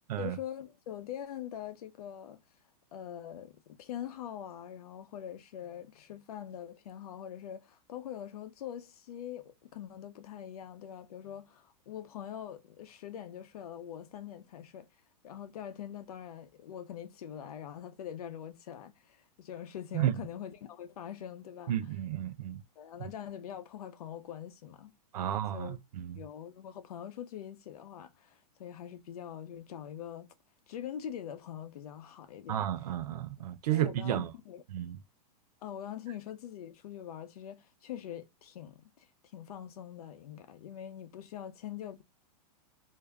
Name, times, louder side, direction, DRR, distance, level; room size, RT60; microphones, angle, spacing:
voice 1, 0.2-2.4 2.9-14.9 15.2-21.8 22.8-24.9 25.2-25.8 26.1-30.3 30.7-32.7 33.7-34.6 35.6-39.1 39.3-42.0, left 10 dB, 65° left, 0.8 m, -43 dB
voice 2, 21.7-22.6 23.0-23.1 25.1-26.2 32.5-34.3 34.7-35.0, right 12 dB, 70° right, 0.6 m, -32 dB
3.3 x 2.8 x 3.4 m
supercardioid pair, 160°, 21 cm